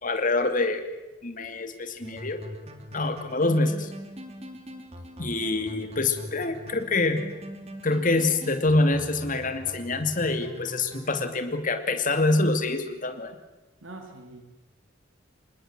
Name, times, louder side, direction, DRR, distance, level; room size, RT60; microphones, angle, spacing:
voice 1, 0.0-0.9 1.2-2.4 2.9-3.9 5.2-7.2 7.8-13.3, left 2 dB, 45° left, 8 dB, 2.4 m, -25 dB
sound 1, 2.0-11.3, equal, 30° right, 2.9 m, -42 dB
voice 2, 13.8-14.4, right 2 dB, 80° right, 4 dB, 3.4 m, -43 dB
26.5 x 20.0 x 7.6 m, 1.1 s
head